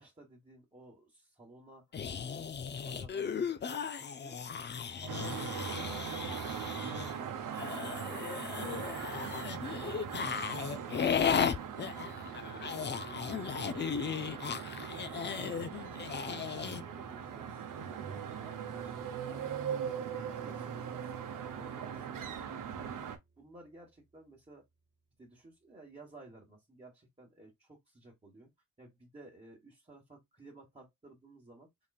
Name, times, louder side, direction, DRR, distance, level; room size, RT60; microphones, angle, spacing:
voice 1, 0.0-2.0 2.3-4.5 7.1-14.6 15.3-19.6 20.1-22.2 22.7-23.0 23.4-24.6 25.2-28.5 28.8-31.7, right 2 dB, 20° right, 1.4 m, -56 dB
sound 1, 1.9-7.2 7.5-16.8, left 7 dB, 30° left, 0.5 m, -36 dB
sound 2, 5.1-23.2, right 8 dB, 65° right, 0.9 m, -40 dB
sound 3, 8.6-23.5, right 4 dB, 35° right, 1.0 m, -56 dB
3.9 x 3.5 x 2.4 m
cardioid pair, 80°, 34 cm